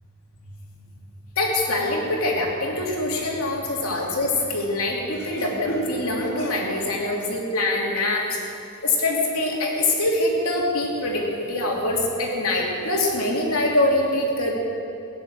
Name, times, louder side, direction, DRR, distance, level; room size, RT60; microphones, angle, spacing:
voice 1, 1.3-8.4 8.8-14.5, left 2 dB, 75° left, -2 dB, 3.0 m, -24 dB
16.0 x 10.0 x 7.6 m, 2.7 s
head